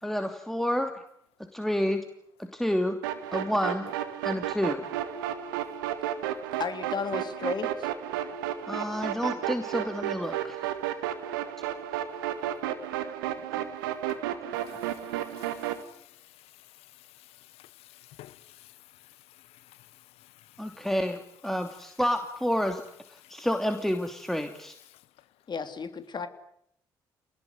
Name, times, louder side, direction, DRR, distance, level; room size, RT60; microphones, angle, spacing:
voice 1, 0.0-0.9 1.5-2.0 2.4-3.0 3.3-3.8 4.2-4.8 8.7-10.7 20.6-22.8 23.1-24.7, equal, 5° left, 2.8 m, -29 dB
sound 1, 3.0-15.8, right 11 dB, 80° right, 1.9 m, -33 dB
voice 2, 6.6-7.9 25.5-26.3, left 5 dB, 40° left, 3.3 m, -33 dB
voice 3, 14.7-20.9 23.2-23.5 24.9-25.0, left 15 dB, 65° left, 1.2 m, -54 dB
28.0 x 19.5 x 9.8 m
figure-of-eight pair, 45°, 11 cm